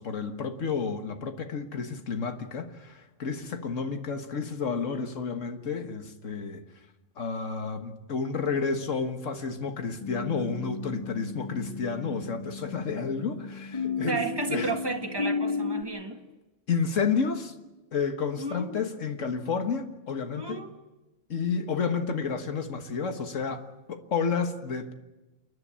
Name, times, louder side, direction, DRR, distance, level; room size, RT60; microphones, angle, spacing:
voice 1, 0.0-6.6 7.2-14.2 14.5-14.7 16.7-17.6 17.9-20.6 21.3-24.9, left 5 dB, 80° left, 1.8 m, -31 dB
sound 1, 10.0-15.8, left 4 dB, 30° left, 1.6 m, -34 dB
voice 2, 14.1-16.2 18.4-18.7 20.3-20.8, right 3 dB, 20° right, 1.8 m, -33 dB
28.5 x 10.5 x 9.9 m
omnidirectional pair, 1.3 m